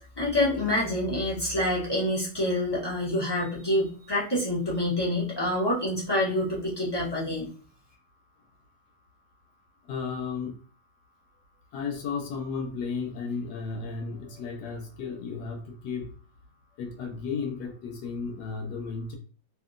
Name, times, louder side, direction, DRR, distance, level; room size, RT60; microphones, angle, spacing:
voice 1, 0.2-7.5, left 1 dB, 35° left, -7 dB, 0.4 m, -27 dB
voice 2, 9.9-10.5 11.7-16.1 16.8-19.2, left 5 dB, 70° left, 2 dB, 1.2 m, -34 dB
2.8 x 2.7 x 2.4 m, 0.39 s
omnidirectional pair, 1.9 m